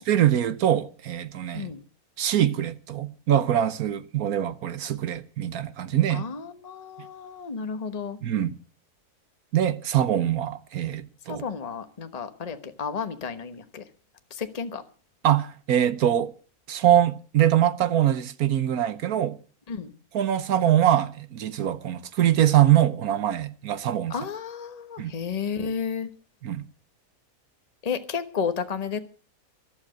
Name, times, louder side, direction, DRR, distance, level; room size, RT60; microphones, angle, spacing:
voice 1, 0.0-1.7 2.2-6.2 8.2-8.5 9.5-11.4 15.2-16.3 16.7-19.4 20.1-24.1 25.0-25.1 26.4-26.6, right 11 dB, 75° right, 1.4 m, -23 dB
voice 2, 6.1-8.2 11.3-13.8 14.3-14.8 19.7-19.9 24.1-26.1 27.8-29.0, left 6 dB, 30° left, 1.2 m, -32 dB
14.5 x 12.0 x 6.4 m
omnidirectional pair, 1.6 m